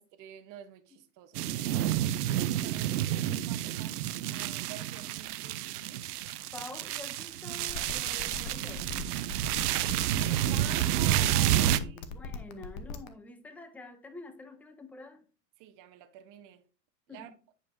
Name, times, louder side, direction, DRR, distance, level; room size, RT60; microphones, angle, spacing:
voice 1, 0.0-1.9 2.4-6.0 9.7-12.4 15.6-16.6 17.1-17.3, right 11 dB, 40° right, 1.0 m, -49 dB
sound 1, 1.4-11.8, right 12 dB, 70° right, 0.7 m, -30 dB
voice 2, 6.5-9.2 11.7-15.3 17.1-17.4, left 3 dB, 5° left, 0.5 m, -47 dB
sound 2, 7.7-13.1, left 4 dB, 40° left, 1.0 m, -39 dB
9.0 x 5.3 x 2.6 m
hypercardioid pair, 105°, 48 cm